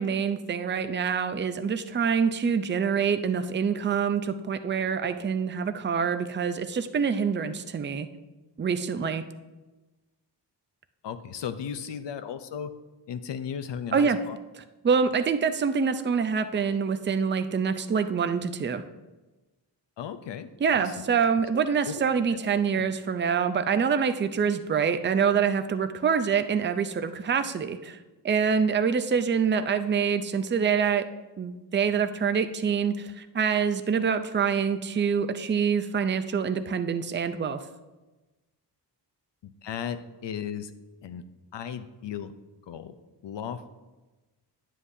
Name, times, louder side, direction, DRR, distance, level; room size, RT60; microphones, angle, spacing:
voice 1, 0.0-8.1 8.6-9.2 13.9-14.2 14.8-18.8 20.6-28.0 28.2-31.0 31.4-37.6, right 6 dB, 30° right, 10 dB, 0.4 m, -26 dB
voice 2, 11.0-12.7 13.1-14.4 20.0-20.9 21.9-22.0 22.3-22.4 22.7-22.9 39.4-40.7 41.0-41.2 41.5-42.3 42.7-43.0 43.2-43.8, left 8 dB, 90° left, 10 dB, 0.6 m, -36 dB
9.8 x 7.5 x 2.7 m, 1.1 s
wide cardioid pair, 100°, 42 cm